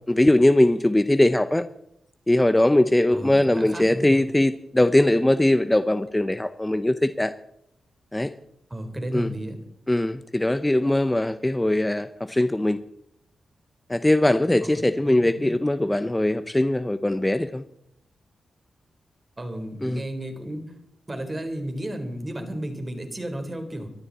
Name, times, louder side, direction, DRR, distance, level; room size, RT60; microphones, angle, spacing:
voice 1, 0.1-1.7 2.3-7.3 8.1-8.3 9.1-9.3 9.9-12.8 13.9-17.6 19.8-20.0, left 1 dB, 15° left, 11 dB, 0.9 m, -21 dB
voice 2, 3.1-4.2 8.7-9.6 14.6-15.6 19.4-20.8 21.1-23.9, right 1 dB, 30° right, 6 dB, 4.3 m, -33 dB
24.5 x 13.0 x 4.3 m, 0.77 s
cardioid pair, 55°, 0 cm